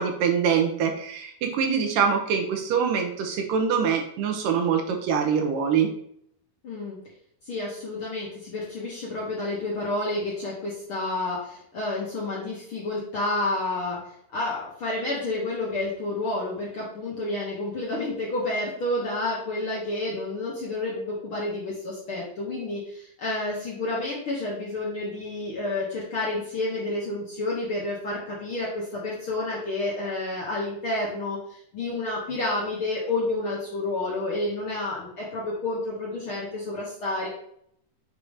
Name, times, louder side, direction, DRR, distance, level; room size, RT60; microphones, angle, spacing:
voice 1, 0.0-5.9, right 7 dB, 80° right, 4 dB, 2.5 m, -24 dB
voice 2, 6.6-7.0 7.5-14.0 14.3-31.4 31.7-37.3, left 2 dB, 55° left, -5 dB, 1.6 m, -30 dB
6.7 x 2.9 x 4.9 m, 0.68 s
omnidirectional pair, 3.9 m